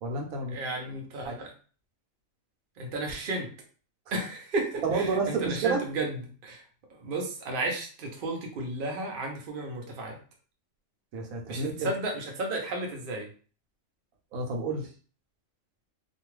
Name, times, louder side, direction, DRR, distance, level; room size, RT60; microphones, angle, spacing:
voice 1, 0.0-0.5 1.2-1.4 4.8-5.8 11.1-11.9 14.3-14.9, right 4 dB, 85° right, 2 dB, 1.1 m, -29 dB
voice 2, 0.5-1.5 2.8-3.5 4.1-6.6 7.0-10.2 11.5-13.3, right 2 dB, 50° right, 1 dB, 0.8 m, -33 dB
2.5 x 2.3 x 3.1 m, 0.40 s
omnidirectional pair, 1.4 m